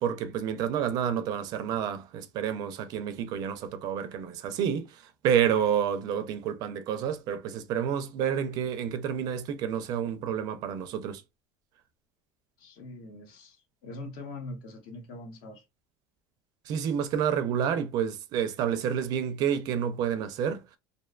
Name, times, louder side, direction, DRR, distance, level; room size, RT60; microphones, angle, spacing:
voice 1, 0.0-11.2 16.7-20.6, right 8 dB, 50° right, 0.4 m, -29 dB
voice 2, 12.6-15.6, left 2 dB, 60° left, 0.9 m, -43 dB
2.5 x 2.2 x 2.3 m
cardioid pair, 155°, 9 cm